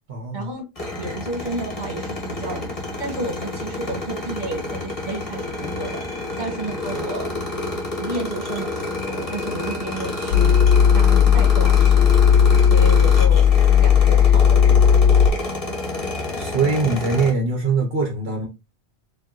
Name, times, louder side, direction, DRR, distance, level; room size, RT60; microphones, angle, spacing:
voice 1, 0.1-0.5 16.4-18.5, right 4 dB, 65° right, 1.1 m, -22 dB
sound 1, 0.7-17.3, left 2 dB, 35° left, 1.1 m, -29 dB
voice 2, 1.0-2.7 3.0-6.0 6.4-7.3 8.0-10.6 10.9-12.1 12.6-13.4 13.8-14.9, right 2 dB, 45° right, 1.7 m, -31 dB
sound 2, 10.3-15.3, left 8 dB, 85° left, 0.9 m, -14 dB
4.5 x 2.6 x 2.9 m
omnidirectional pair, 1.1 m